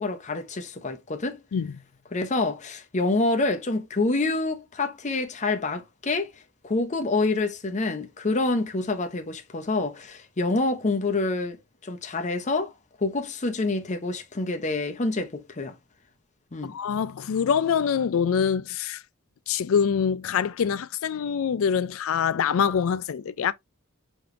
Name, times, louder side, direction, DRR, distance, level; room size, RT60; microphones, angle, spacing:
voice 1, 0.0-1.4 2.1-6.3 6.6-11.6 11.8-12.7 13.0-15.8 16.5-16.8, left 2 dB, 35° left, 0.7 m, -27 dB
voice 2, 16.6-19.0 19.5-23.5, left 7 dB, 70° left, 0.4 m, -25 dB
4.9 x 3.1 x 2.5 m
head